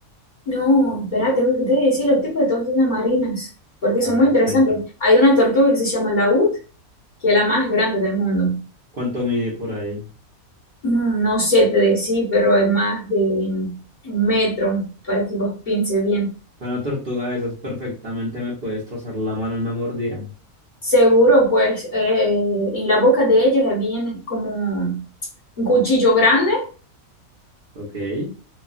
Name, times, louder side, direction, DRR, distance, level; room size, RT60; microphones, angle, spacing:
voice 1, 0.5-3.5 3.8-6.6 7.2-8.6 10.8-13.7 14.0-16.3 20.8-25.0 25.6-26.6, equal, 35° left, -4 dB, 1.3 m, -18 dB
voice 2, 4.0-4.6 8.9-10.1 16.6-20.3 27.7-28.3, left 1 dB, 45° right, -7 dB, 0.9 m, -27 dB
3.0 x 2.3 x 2.4 m, 0.36 s
omnidirectional pair, 1.5 m